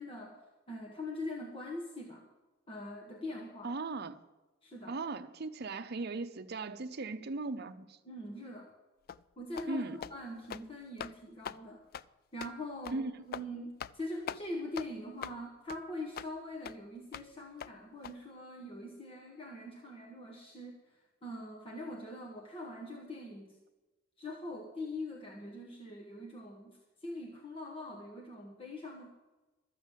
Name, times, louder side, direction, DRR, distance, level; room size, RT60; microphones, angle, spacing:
voice 1, 0.0-2.3 2.7-3.8 4.6-5.0 8.0-8.7 9.4-11.9 12.3-23.6 24.2-29.1, left 1 dB, 30° left, 1.2 m, -43 dB
voice 2, 3.6-4.2 4.9-8.0 9.7-10.0 12.9-13.1, right 3 dB, 55° right, 0.7 m, -38 dB
sound 1, 9.1-9.2 9.6-9.7 10.0-10.2 10.4-10.7 11.0-11.1 11.4-11.6 11.9-12.1 12.4-12.5 12.8-13.0 13.3-13.5 13.8-14.0 14.3-14.4 14.8-14.9 15.2-15.4 15.7-15.8 16.2-16.3 16.6-16.8 17.1-17.3 17.6-17.7 18.0-18.1, left 8 dB, 50° left, 0.3 m, -42 dB
13.0 x 7.8 x 7.5 m
head